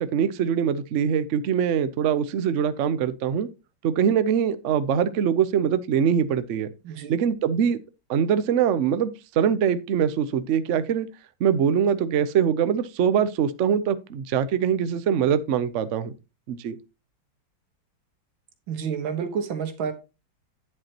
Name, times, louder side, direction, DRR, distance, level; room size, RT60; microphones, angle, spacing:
voice 1, 0.0-3.5 3.8-6.7 7.1-7.8 8.1-9.1 9.4-11.1 11.4-16.1 16.5-16.8, right 8 dB, 70° right, 0.7 m, -23 dB
voice 2, 18.7-19.9, right 7 dB, 85° right, 2.1 m, -29 dB
9.6 x 7.8 x 2.9 m
omnidirectional pair, 2.1 m